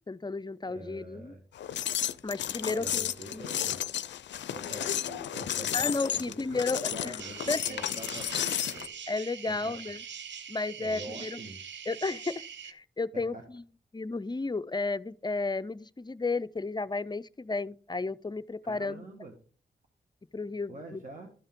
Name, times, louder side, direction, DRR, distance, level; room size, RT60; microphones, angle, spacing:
voice 1, 0.1-1.3 2.2-3.5 5.7-7.2 7.5-7.8 9.1-10.0 10.5-11.4 11.9-13.6 13.9-19.0 20.3-21.0, left 3 dB, 25° left, 0.5 m, -33 dB
voice 2, 0.7-1.4 2.6-3.8 4.5-8.9 9.5-9.7 10.8-11.6 13.1-13.4 18.6-19.3 20.7-21.3, right 2 dB, 50° right, 1.7 m, -45 dB
sound 1, 1.6-8.9, left 10 dB, 75° left, 0.4 m, -33 dB
sound 2, 7.2-12.7, right 7 dB, 80° right, 0.6 m, -43 dB
13.0 x 5.5 x 3.6 m
cardioid pair, 40°, 18 cm